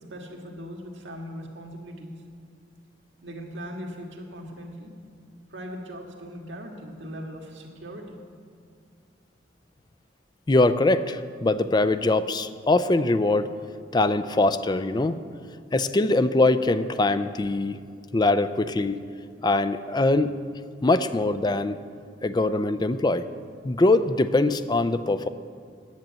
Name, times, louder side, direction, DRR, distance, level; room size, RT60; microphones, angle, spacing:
voice 1, 0.1-2.2 3.2-4.9 5.5-8.2 19.4-19.5, equal, 80° right, 1 dB, 1.8 m, -39 dB
voice 2, 10.5-13.5 13.9-15.2 15.7-17.8 18.1-19.0 19.4-20.3 20.8-21.8 22.2-23.3 23.6-25.3, left 2 dB, 25° left, 13 dB, 0.4 m, -22 dB
10.5 x 9.1 x 7.5 m, 2.3 s
head